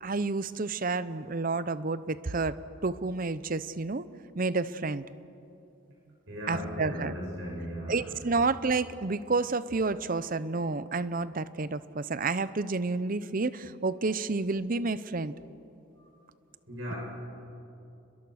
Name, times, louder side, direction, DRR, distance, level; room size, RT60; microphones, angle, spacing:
voice 1, 0.0-2.6 2.8-4.1 4.3-5.0 6.5-7.1 7.9-15.3, right 3 dB, 40° right, 16 dB, 0.6 m, -30 dB
voice 2, 6.3-8.1 16.7-17.0, equal, 60° right, -3 dB, 7.6 m, -37 dB
30.0 x 21.5 x 6.4 m, 2.8 s
head